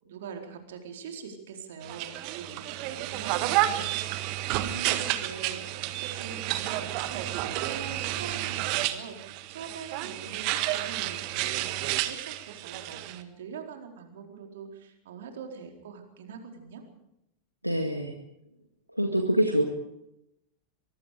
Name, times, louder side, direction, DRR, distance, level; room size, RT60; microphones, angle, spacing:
voice 1, 0.0-16.8, right 6 dB, 60° right, 3 dB, 4.2 m, -43 dB
sound 1, 1.8-13.2, right 14 dB, 45° right, 1.6 m, -31 dB
voice 2, 17.6-18.1 18.9-19.7, right 1 dB, 90° right, 3 dB, 1.9 m, -25 dB
23.5 x 23.5 x 5.1 m, 0.83 s
figure-of-eight pair, 90°, 0 cm